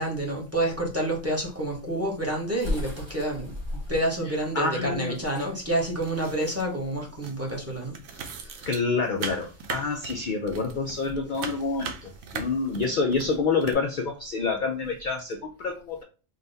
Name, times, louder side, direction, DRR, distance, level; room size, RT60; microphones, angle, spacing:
voice 1, 0.0-8.8 9.8-9.9, right 1 dB, 10° right, 0.9 m, -29 dB
sound 1, 1.6-7.1, left 1 dB, 40° right, 1.3 m, -36 dB
voice 2, 4.5-5.2 8.7-16.0, left 4 dB, 65° left, 0.4 m, -27 dB
sound 2, 5.9-6.9 7.2-13.7, right 5 dB, 90° right, 1.1 m, -39 dB
3.9 x 2.3 x 3.8 m
omnidirectional pair, 1.4 m